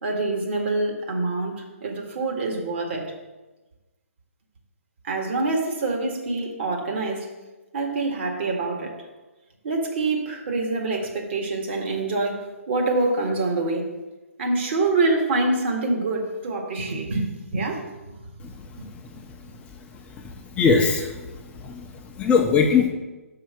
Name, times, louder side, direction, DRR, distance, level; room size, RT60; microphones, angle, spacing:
voice 1, 0.0-3.1 5.0-7.3 7.7-9.0 9.6-13.9 14.4-18.2 18.8-18.9, right 3 dB, 50° right, 1 dB, 1.9 m, -26 dB
voice 2, 19.9-21.3 21.6-22.9, left 5 dB, 15° left, 1 dB, 0.7 m, -22 dB
5.7 x 5.6 x 6.4 m, 1.1 s
figure-of-eight pair, 135°, 8 cm